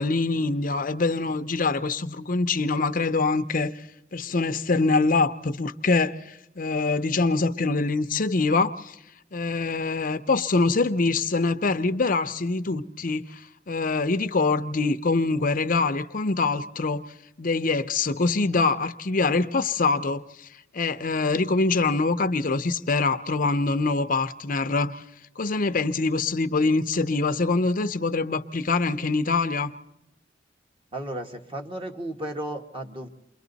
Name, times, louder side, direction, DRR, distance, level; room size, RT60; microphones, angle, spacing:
voice 1, 0.0-3.7 4.1-9.0 9.3-17.0 17.4-20.5 20.7-25.0 25.4-29.7, left 3 dB, 45° left, 0.7 m, -24 dB
voice 2, 30.9-33.1, right 1 dB, 30° right, 1.6 m, -34 dB
29.0 x 22.5 x 4.0 m
head